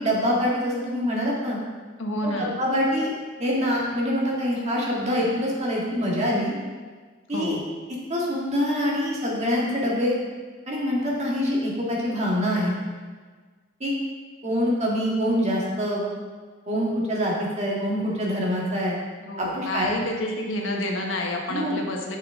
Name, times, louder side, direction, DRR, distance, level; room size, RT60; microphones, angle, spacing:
voice 1, 0.0-1.6 2.2-3.1 3.4-6.5 7.3-7.6 8.1-10.2 10.7-12.7 13.8-13.9 14.4-16.0 16.7-18.9 19.4-19.9 21.5-21.8, equal, 35° right, -4 dB, 1.8 m, -25 dB
voice 2, 2.0-2.5 7.3-7.6 19.2-22.2, left 1 dB, 85° left, 0 dB, 1.2 m, -29 dB
9.8 x 5.7 x 3.7 m, 1.5 s
head